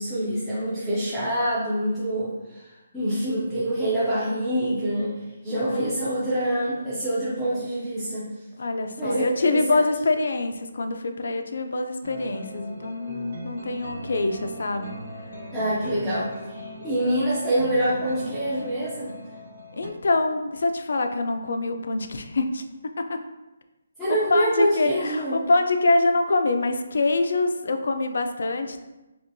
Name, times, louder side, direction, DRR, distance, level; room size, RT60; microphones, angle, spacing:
voice 1, 0.0-2.7 2.9-5.2 5.4-8.3 9.0-9.8 15.5-19.1 24.0-25.4, right 1 dB, ahead, -13 dB, 0.4 m, -26 dB
voice 2, 5.5-6.0 8.6-14.9 19.7-23.2 24.1-28.8, left 2 dB, 55° left, 7 dB, 0.4 m, -25 dB
sound 1, 12.0-19.9, equal, 80° right, 0.8 m, -39 dB
4.3 x 3.0 x 2.6 m, 1.0 s
hypercardioid pair, 180°, 0 cm